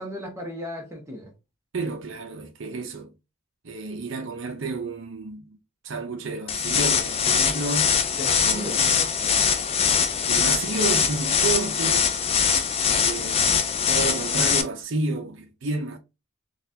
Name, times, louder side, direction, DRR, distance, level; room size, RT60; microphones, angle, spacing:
voice 1, 0.0-1.3 8.1-9.4, equal, 15° right, 0.9 m, -36 dB
voice 2, 1.7-3.1 3.6-5.5 5.8-7.9 8.4-8.9 10.3-12.1 13.0-13.5 13.9-16.0, right 3 dB, 60° right, 0.6 m, -31 dB
sound 1, 6.5-14.6, left 7 dB, 25° left, 0.3 m, -22 dB
3.9 x 2.4 x 2.7 m
head